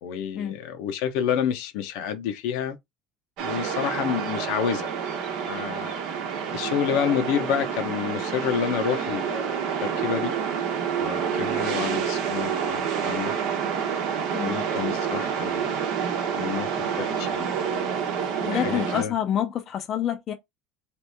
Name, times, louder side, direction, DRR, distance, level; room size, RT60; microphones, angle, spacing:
voice 1, 0.0-2.8 3.4-4.9 5.5-5.9 6.5-10.3 11.0-13.3 14.4-15.8 16.4-17.9 18.4-19.1, left 8 dB, 75° left, 0.7 m, -29 dB
sound 1, 3.4-19.0, right 7 dB, 65° right, 0.8 m, -28 dB
voice 2, 18.4-20.3, left 10 dB, 45° left, 0.5 m, -27 dB
3.0 x 2.5 x 3.4 m
supercardioid pair, 115°, 0 cm